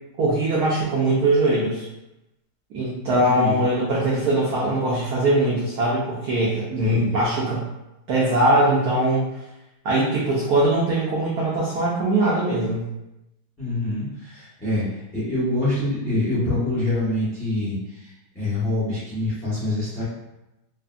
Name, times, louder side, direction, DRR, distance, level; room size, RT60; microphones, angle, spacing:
voice 1, 0.2-1.8 2.7-7.6 8.1-9.2 9.8-12.9, right 1 dB, 75° right, -6 dB, 0.8 m, -21 dB
voice 2, 3.3-3.6 6.8-7.1 13.6-20.0, left 1 dB, 10° left, -11 dB, 0.8 m, -26 dB
3.4 x 2.1 x 2.4 m, 0.95 s
omnidirectional pair, 2.2 m